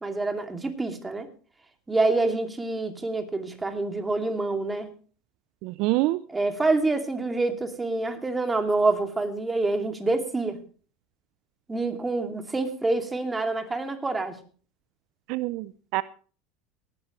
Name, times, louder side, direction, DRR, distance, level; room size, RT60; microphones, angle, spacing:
voice 1, 0.0-1.3 1.9-4.9 6.3-10.6 11.7-14.4, right 3 dB, 15° right, 6 dB, 2.5 m, -27 dB
voice 2, 5.6-6.2 15.3-16.0, right 19 dB, 60° right, 18 dB, 0.5 m, -26 dB
19.0 x 12.5 x 3.1 m, 0.39 s
hypercardioid pair, 90°, 0 cm